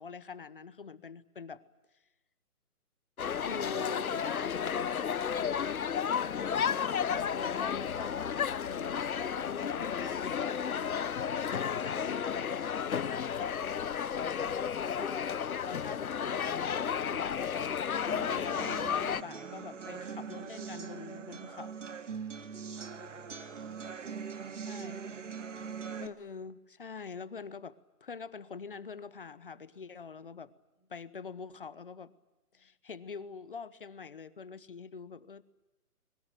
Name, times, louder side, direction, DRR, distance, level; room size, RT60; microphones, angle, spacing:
voice 1, 0.0-1.6 3.4-6.3 7.1-13.5 14.8-21.9 24.7-25.0 26.0-30.5 30.9-32.1 32.5-35.4, left 5 dB, 35° left, 18 dB, 1.0 m, -44 dB
sound 1, 3.2-19.2, left 7 dB, 65° left, 0.9 m, -32 dB
sound 2, 18.1-26.1, right 6 dB, 50° right, 2.1 m, -42 dB
voice 2, 22.3-24.1 30.8-30.9, right 1 dB, 10° right, 0 dB, 4.8 m, -64 dB
24.0 x 22.5 x 9.1 m, 1.1 s
hypercardioid pair, 170°, 46 cm